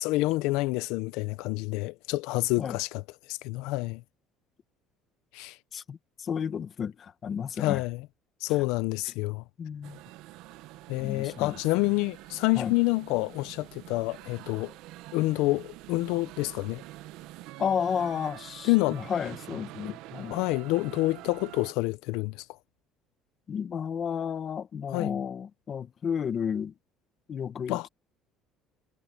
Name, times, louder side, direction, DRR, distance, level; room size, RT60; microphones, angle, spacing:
voice 1, 0.0-3.0 3.3-4.0 5.3-5.6 7.6-8.0 8.4-9.4 10.9-14.7 15.1-16.8 18.7-19.0 19.8-19.9 20.3-22.4 24.9-25.1 27.7-27.9, left 21 dB, 85° left, 0.5 m, -28 dB
voice 2, 5.7-7.8 9.0-9.1 9.6-10.0 11.0-11.9 12.5-12.8 17.6-20.4 23.5-26.7 27.3-27.9, left 7 dB, 30° left, 1.2 m, -32 dB
sound 1, 9.8-21.7, right 16 dB, 75° right, 1.1 m, -46 dB
cardioid pair, 165°, 0 cm